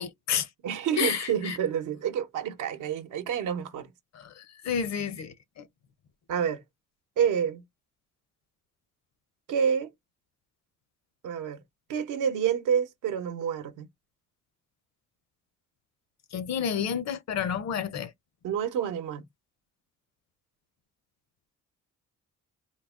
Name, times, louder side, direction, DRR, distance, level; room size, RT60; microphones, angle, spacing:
voice 1, 0.0-0.5 1.0-1.6 4.1-5.6 16.3-18.1, left 7 dB, 60° left, 0.7 m, -30 dB
voice 2, 0.6-3.9 6.3-6.6 7.2-7.6 9.5-9.9 11.2-11.6 11.9-13.9 18.4-19.2, right 8 dB, 80° right, 0.8 m, -28 dB
3.9 x 2.1 x 3.6 m
cardioid pair, 90°, 30 cm